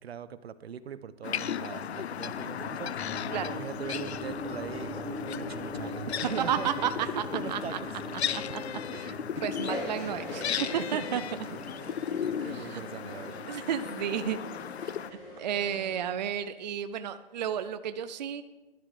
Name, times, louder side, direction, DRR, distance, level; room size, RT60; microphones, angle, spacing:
voice 1, 0.0-6.7 7.1-7.7 8.9-9.4 10.6-11.3 11.8-12.0 12.2-13.4, right 8 dB, 75° right, 14 dB, 0.9 m, -41 dB
sound 1, 1.2-15.1, left 9 dB, 90° left, 0.6 m, -36 dB
sound 2, 2.3-14.6, left 1 dB, 5° left, 1.0 m, -41 dB
voice 2, 6.5-6.9 7.2-7.3 7.5-7.8 8.3-8.6 9.0-9.1 9.4-11.2 12.4-12.8 13.5-14.4 14.8-14.9 15.4-18.4, right 9 dB, 45° right, 10 dB, 0.5 m, -32 dB
sound 3, 9.6-16.1, equal, 25° left, 4.9 m, -43 dB
11.0 x 11.0 x 4.9 m, 1.2 s
hypercardioid pair, 160°, 32 cm